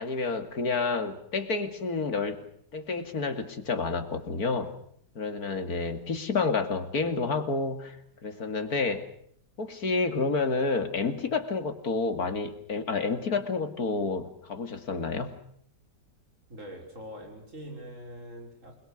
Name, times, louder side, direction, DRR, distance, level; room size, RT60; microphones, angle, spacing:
voice 1, 0.0-2.4 2.7-4.7 5.1-8.0 8.2-9.0 9.6-15.4, left 4 dB, 60° left, 8 dB, 2.9 m, -29 dB
voice 2, 16.5-18.8, equal, 45° right, 3 dB, 6.2 m, -43 dB
28.5 x 21.5 x 6.6 m, 0.66 s
omnidirectional pair, 1.9 m